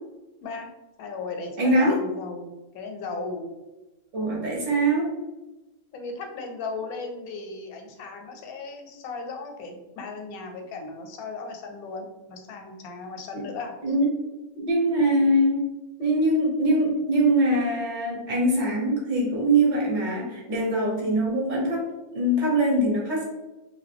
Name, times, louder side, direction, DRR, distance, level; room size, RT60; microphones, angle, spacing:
voice 1, 1.0-3.5 5.9-13.8, left 3 dB, 85° left, 4 dB, 1.0 m, -36 dB
voice 2, 1.6-2.0 4.1-5.1 13.3-13.4 13.8-14.1 14.6-15.7 16.0-21.9 22.1-23.2, right 1 dB, 40° right, -3 dB, 0.9 m, -23 dB
2.6 x 2.5 x 3.3 m, 1.1 s
omnidirectional pair, 1.5 m